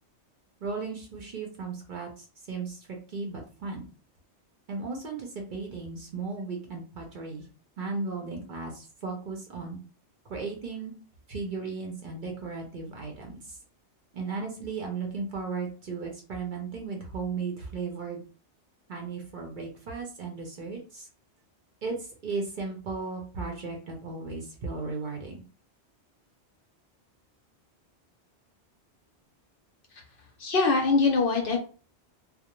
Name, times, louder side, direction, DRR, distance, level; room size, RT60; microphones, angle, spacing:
voice 1, 0.6-2.8 3.1-3.9 4.7-7.4 7.8-9.8 10.3-11.0 11.3-13.6 14.1-18.2 18.9-21.1 21.8-22.0 22.2-25.4, right 4 dB, 55° right, 0 dB, 0.7 m, -35 dB
voice 2, 30.4-31.6, left 4 dB, 60° left, 2 dB, 0.7 m, -23 dB
2.3 x 2.0 x 2.9 m, 0.37 s
omnidirectional pair, 1.2 m